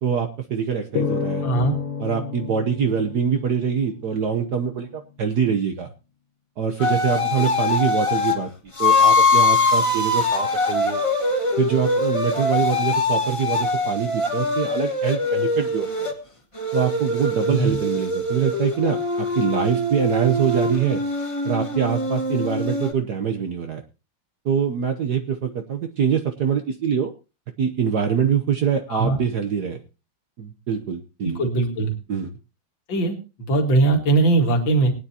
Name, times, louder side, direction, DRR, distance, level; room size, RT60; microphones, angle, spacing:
voice 1, 0.0-1.5 2.0-5.9 6.6-8.5 8.8-11.0 11.6-16.1 16.7-21.0 21.4-23.8 24.4-27.1 27.6-29.8 30.4-31.4 32.1-32.3, right 7 dB, 60° right, 6 dB, 1.2 m, -24 dB
sound 1, 1.0-4.3, left 6 dB, 85° left, 2.2 m, -30 dB
voice 2, 1.4-1.8 17.5-17.8 28.9-29.2 31.2-31.9 32.9-34.9, right 3 dB, 60° left, 3 dB, 2.8 m, -20 dB
sound 2, 6.8-8.4 8.8-16.1 16.6-22.9, left 2 dB, 15° left, 1.5 m, -22 dB
21.0 x 9.5 x 2.8 m, 0.30 s
omnidirectional pair, 2.4 m